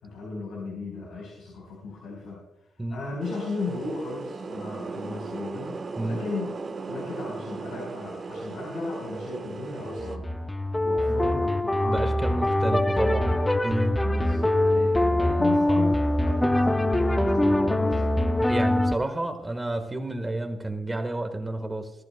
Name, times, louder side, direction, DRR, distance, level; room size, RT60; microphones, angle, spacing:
voice 1, 0.0-10.5 10.8-13.4 14.0-18.2, left 3 dB, 85° left, -1 dB, 4.1 m, -36 dB
sound 1, 3.2-10.2, right 4 dB, 40° right, 1.2 m, -37 dB
sound 2, 9.9-19.0, left 1 dB, 10° left, 0.6 m, -23 dB
voice 2, 11.8-13.4 13.6-14.0 18.5-21.9, right 2 dB, 15° right, 7 dB, 1.5 m, -30 dB
19.5 x 13.5 x 2.2 m, 0.91 s
cardioid pair, 95°, 0 cm